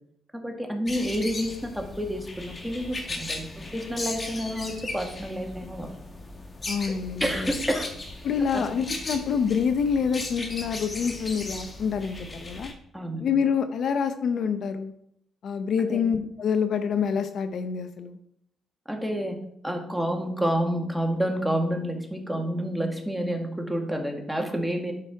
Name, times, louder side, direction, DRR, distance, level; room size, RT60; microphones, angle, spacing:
voice 1, 0.3-5.9 7.2-8.1 8.5-8.7 12.9-13.2 15.9-16.0 18.9-19.4 19.6-24.9, equal, ahead, 2 dB, 1.9 m, -29 dB
sound 1, 0.9-12.7, left 2 dB, 30° left, 1.9 m, -37 dB
voice 2, 6.7-7.5 8.2-12.7 13.2-14.9 15.4-18.2, left 6 dB, 60° left, 9 dB, 0.7 m, -26 dB
11.5 x 4.9 x 4.7 m, 0.72 s
cardioid pair, 90°, 0 cm